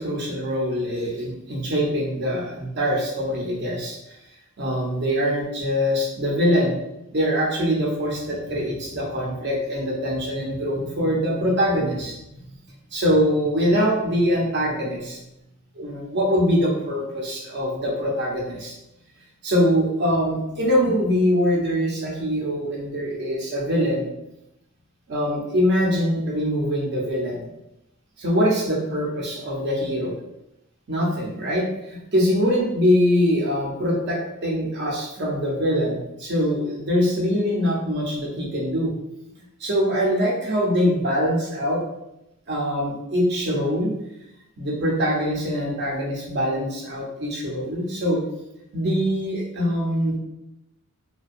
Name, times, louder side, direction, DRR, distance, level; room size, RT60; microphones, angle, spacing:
voice 1, 0.0-4.2 4.6-6.8 7.1-12.2 12.9-15.2 15.8-18.7 19.4-24.1 25.1-27.5 28.2-30.1 30.9-38.9 39.6-41.8 42.5-43.9 44.6-48.2 48.7-50.2, equal, 50° right, -2 dB, 0.6 m, -23 dB
2.5 x 2.2 x 2.4 m, 0.87 s
head